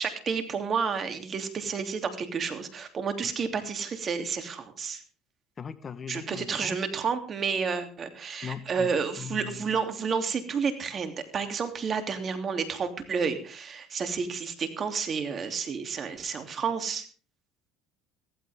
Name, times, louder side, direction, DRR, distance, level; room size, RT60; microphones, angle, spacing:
voice 1, 0.0-5.0 6.1-17.1, right 5 dB, 40° right, 7 dB, 3.0 m, -30 dB
voice 2, 5.6-6.8 8.4-9.7, left 7 dB, 35° left, 14 dB, 1.2 m, -40 dB
16.0 x 15.0 x 3.6 m, 0.39 s
hypercardioid pair, 80°, 0 cm